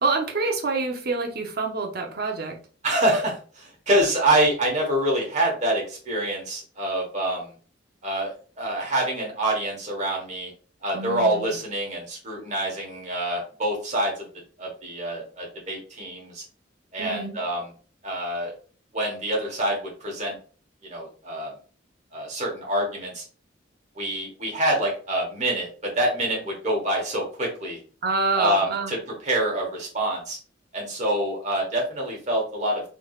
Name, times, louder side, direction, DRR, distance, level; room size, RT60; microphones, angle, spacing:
voice 1, 0.0-2.6 10.9-11.5 17.0-17.4 28.0-29.0, right 3 dB, 55° right, 3 dB, 0.7 m, -27 dB
voice 2, 2.8-7.5 8.0-10.5 10.8-14.2 14.6-16.4 16.9-17.6 18.0-18.5 18.9-20.4 20.8-21.5 22.1-23.2 23.9-27.8 28.3-29.0 29.2-30.4 30.7-32.8, right 1 dB, 40° right, -1 dB, 1.2 m, -26 dB
3.4 x 3.1 x 2.4 m, 0.40 s
head